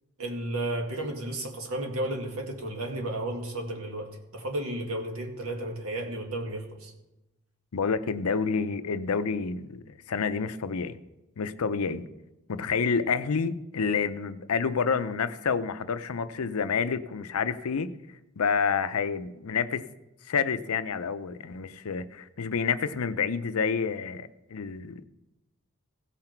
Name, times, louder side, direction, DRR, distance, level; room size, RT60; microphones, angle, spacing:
voice 1, 0.2-6.9, right 1 dB, 85° right, 2 dB, 1.9 m, -33 dB
voice 2, 7.7-11.0 11.4-12.0 12.5-17.9 18.4-19.9 20.2-25.1, left 5 dB, 85° left, 13 dB, 0.6 m, -28 dB
16.5 x 5.8 x 4.5 m, 0.98 s
head